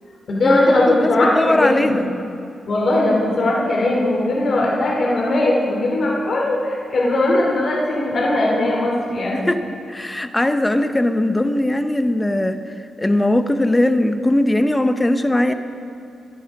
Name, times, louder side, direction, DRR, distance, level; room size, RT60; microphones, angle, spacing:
voice 1, 0.3-2.0 2.7-9.5, left 2 dB, 60° left, -3 dB, 2.7 m, -19 dB
voice 2, 0.9-2.1 9.3-9.6 9.9-12.6 13.0-15.5, left 1 dB, 15° left, 9 dB, 0.8 m, -19 dB
22.0 x 11.5 x 3.6 m, 2.6 s
cardioid pair, 80°, 0 cm